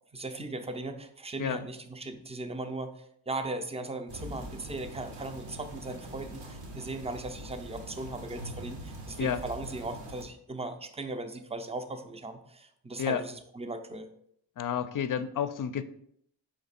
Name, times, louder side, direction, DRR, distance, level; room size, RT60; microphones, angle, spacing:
voice 1, 0.1-14.1, right 2 dB, 15° right, 8 dB, 0.5 m, -38 dB
sound 1, 4.1-10.3, right 1 dB, 75° right, 1.0 m, -43 dB
voice 2, 14.6-15.8, left 8 dB, 50° left, 12 dB, 0.4 m, -30 dB
4.2 x 3.1 x 4.1 m, 0.69 s
cardioid pair, 55°, 43 cm